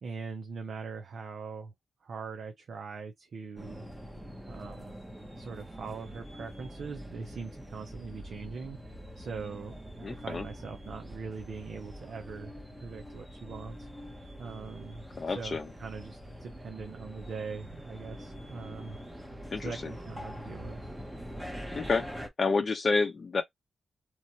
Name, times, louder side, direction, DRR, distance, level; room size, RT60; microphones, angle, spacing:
voice 1, 0.0-1.7 2.0-3.8 4.5-5.0 5.4-12.5 12.8-13.9 14.4-15.0 15.3-19.3 19.6-20.9, right 5 dB, 55° right, 0.7 m, -42 dB
sound 1, 3.6-22.3, equal, 5° right, 0.8 m, -44 dB
voice 2, 10.0-10.4 15.2-15.7 19.5-19.9 21.7-22.0 22.4-23.4, left 4 dB, 35° left, 0.8 m, -29 dB
3.1 x 2.3 x 2.8 m
wide cardioid pair, 140°, 0 cm